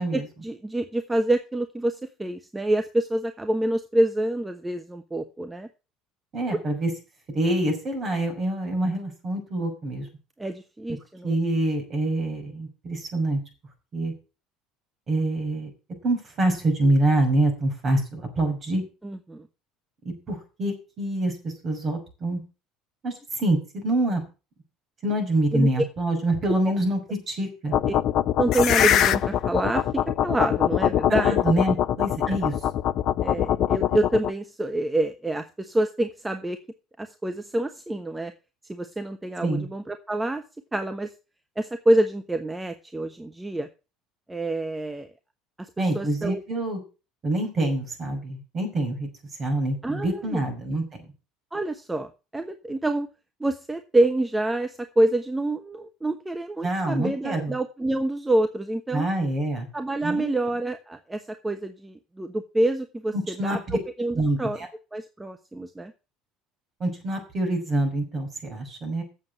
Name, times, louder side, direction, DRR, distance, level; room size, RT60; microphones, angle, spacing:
voice 1, 0.0-5.7 10.4-11.4 19.0-19.5 25.5-25.7 26.7-26.8 27.9-28.0 28.4-31.4 33.2-36.6 37.0-38.3 38.7-40.4 40.7-41.1 41.6-43.7 44.3-45.1 45.9-46.4 49.8-50.4 51.5-53.1 53.4-59.1 59.7-63.1 63.4-63.6 64.0-64.6 64.9-65.9, right 1 dB, 10° right, 6 dB, 1.1 m, -27 dB
voice 2, 6.3-6.9 7.3-10.1 11.2-13.4 13.9-14.1 15.1-15.7 16.0-18.8 20.0-22.4 23.0-24.2 25.0-27.7 31.1-32.5 39.4-39.7 45.8-46.8 47.2-49.1 49.4-50.8 56.6-57.5 58.9-59.7 60.0-60.3 63.1-63.8 64.1-64.7 66.8-69.0, right 1 dB, 40° right, 4 dB, 5.9 m, -26 dB
sound 1, 27.7-34.3, left 10 dB, 50° left, 0.5 m, -23 dB
8.1 x 7.4 x 8.2 m, 0.31 s
figure-of-eight pair, 60°, 0 cm